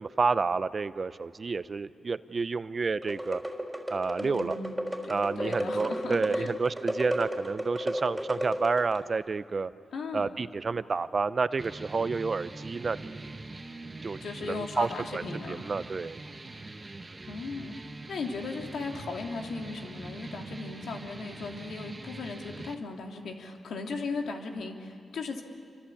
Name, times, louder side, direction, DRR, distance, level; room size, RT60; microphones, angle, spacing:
voice 1, 0.0-3.4 3.9-4.5 5.1-9.7 10.1-13.3 14.0-16.2, right 4 dB, 45° right, 14 dB, 0.7 m, -30 dB
sound 1, 3.0-9.1, equal, 10° right, 3.9 m, -33 dB
voice 2, 4.2-4.7 5.0-6.5 9.9-10.3 14.2-15.6 17.3-17.7 18.1-25.4, left 4 dB, 80° left, 2 dB, 2.7 m, -37 dB
sound 2, 11.6-22.7, right 2 dB, 30° right, 1.5 m, -43 dB
27.5 x 25.0 x 8.6 m, 2.3 s
cardioid pair, 75°, 0 cm